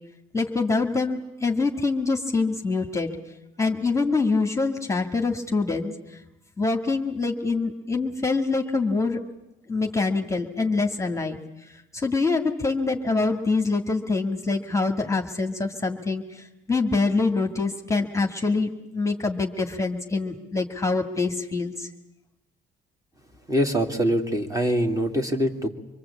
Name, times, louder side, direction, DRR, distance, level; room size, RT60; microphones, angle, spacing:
voice 1, 0.3-3.1 3.6-5.9 6.6-9.2 9.7-11.4 11.9-21.9, left 3 dB, 15° left, 4 dB, 1.9 m, -25 dB
voice 2, 23.5-25.7, equal, 15° right, 4 dB, 2.6 m, -23 dB
26.0 x 22.0 x 8.5 m, 0.92 s
cardioid pair, 90°, 20 cm